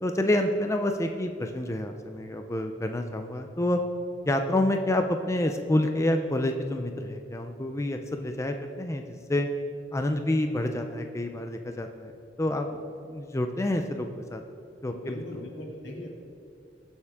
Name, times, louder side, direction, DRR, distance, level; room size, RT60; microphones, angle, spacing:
voice 1, 0.0-3.8 4.3-9.0 9.3-9.5 9.9-12.8 13.1-14.4 14.8-15.2, left 1 dB, 15° left, 5 dB, 0.5 m, -28 dB
voice 2, 14.9-16.1, left 1 dB, 80° left, -2 dB, 2.4 m, -40 dB
21.5 x 7.2 x 3.6 m, 2.5 s
head